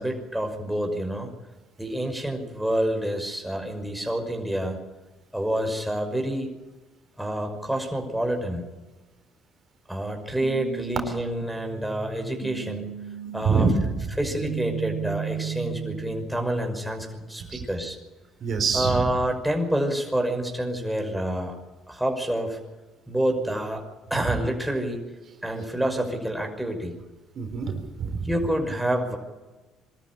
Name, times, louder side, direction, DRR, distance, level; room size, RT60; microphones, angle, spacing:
voice 1, 0.0-1.3 1.8-4.8 5.3-6.5 7.2-8.7 9.9-12.9 13.3-13.7 14.2-18.0 18.7-21.6 21.9-22.6 23.1-23.8 24.1-25.0 25.4-27.0 28.2-29.2, right 1 dB, 5° right, 2 dB, 5.8 m, -28 dB
sound 1, 10.4-16.4, right 7 dB, 85° right, 2.3 m, -35 dB
voice 2, 13.4-13.9 17.5-17.6 18.4-19.0 24.2-24.3 27.4-28.3, right 5 dB, 50° right, 4 dB, 4.0 m, -25 dB
24.0 x 13.5 x 10.0 m, 1.2 s
supercardioid pair, 80°, 0 cm